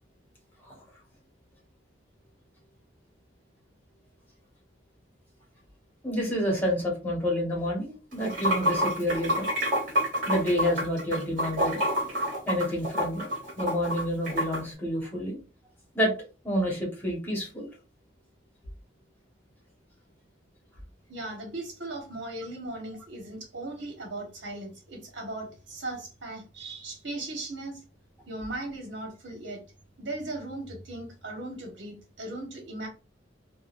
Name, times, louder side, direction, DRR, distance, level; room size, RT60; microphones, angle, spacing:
voice 1, 6.0-9.5 10.3-11.8 12.5-13.3 13.6-15.4 15.9-16.1 16.4-17.7, equal, 10° left, -3 dB, 1.2 m, -28 dB
Water / Sink (filling or washing), 8.1-14.6, equal, 45° right, 1.6 m, -28 dB
voice 2, 21.1-27.8 28.3-29.6 30.0-32.9, right 2 dB, 70° right, 1 dB, 1.2 m, -38 dB
3.7 x 2.2 x 2.5 m, 0.32 s
head